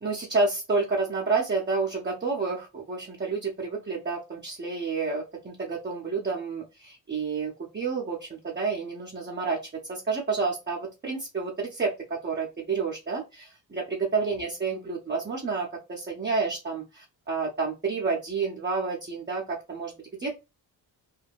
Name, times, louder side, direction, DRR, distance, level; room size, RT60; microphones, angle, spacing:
voice 1, 0.0-9.6 9.9-19.9 20.2-20.3, right 4 dB, 25° right, -3 dB, 0.7 m, -29 dB
2.4 x 2.1 x 3.3 m, 0.26 s
cardioid pair, 80°, 43 cm